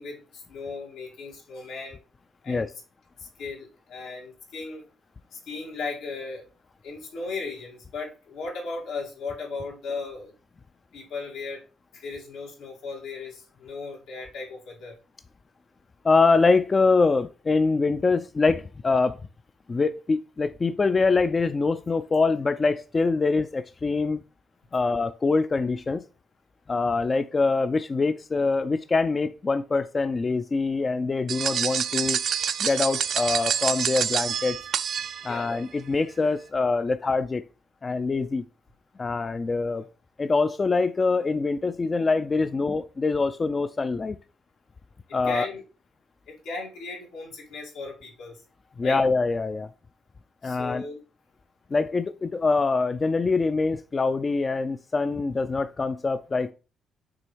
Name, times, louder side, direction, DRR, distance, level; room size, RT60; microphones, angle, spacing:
voice 1, 0.0-2.0 2.4-2.7 3.2-4.9 5.3-6.4 6.8-10.3 10.9-11.6 11.9-15.0 35.2-35.5 45.3-45.6 46.3-48.4 48.8-49.0 50.4-51.0, left 4 dB, 90° left, 2.2 m, -36 dB
voice 2, 16.0-19.2 19.7-24.2 24.7-26.0 26.7-32.2 32.6-34.6 35.2-37.4 37.8-38.4 39.0-39.9 40.2-44.2 45.1-45.5 48.8-49.7 50.4-50.8 51.7-56.5, left 4 dB, 30° left, 0.3 m, -24 dB
sound 1, 31.3-35.5, right 8 dB, 60° right, 0.4 m, -27 dB
6.2 x 3.4 x 4.5 m
cardioid pair, 90°, 0 cm